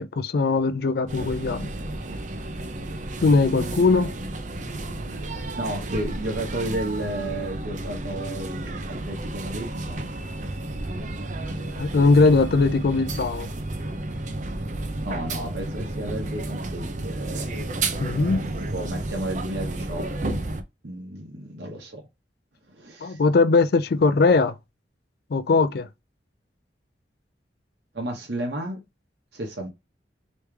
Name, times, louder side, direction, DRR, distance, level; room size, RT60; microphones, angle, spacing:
voice 1, 0.0-1.7 3.2-4.1 11.8-13.5 18.0-18.5 23.0-24.5 25.3-25.9, left 3 dB, 60° left, 0.4 m, -20 dB
sound 1, 1.1-20.6, right 2 dB, 45° right, 0.6 m, -32 dB
voice 2, 3.5-3.8 5.5-10.0 15.0-17.5 18.6-20.4 20.8-22.1 22.7-23.2 27.9-28.8 29.3-29.7, right 1 dB, 75° right, 1.1 m, -32 dB
3.2 x 3.1 x 3.3 m
head